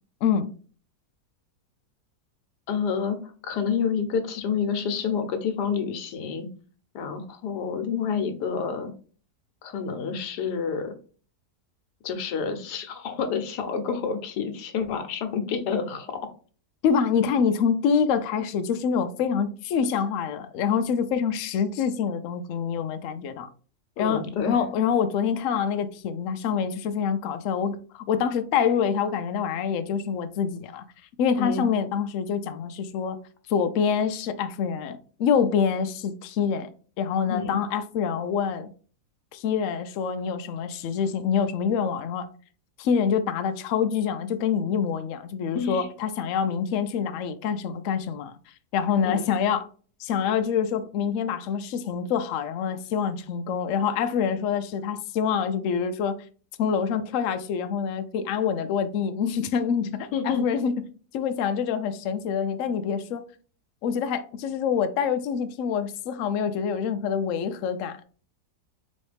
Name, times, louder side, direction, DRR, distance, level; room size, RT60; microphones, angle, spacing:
voice 1, 0.2-0.5 16.8-23.5 24.0-24.2 24.5-30.8 31.2-33.2 33.5-36.7 37.0-38.7 39.3-42.3 42.8-48.3 48.7-49.7 50.0-56.2 56.6-60.8 61.1-63.2 63.8-68.0, left 7 dB, 70° left, 0.8 m, -26 dB
voice 2, 2.7-3.2 3.4-6.5 6.9-8.9 9.6-10.9 12.0-16.2 24.0-24.6 31.4-31.7 37.3-37.6 45.5-45.9 49.0-49.3 60.1-60.5, left 6 dB, 90° left, 1.4 m, -28 dB
4.2 x 3.1 x 3.3 m
omnidirectional pair, 1.7 m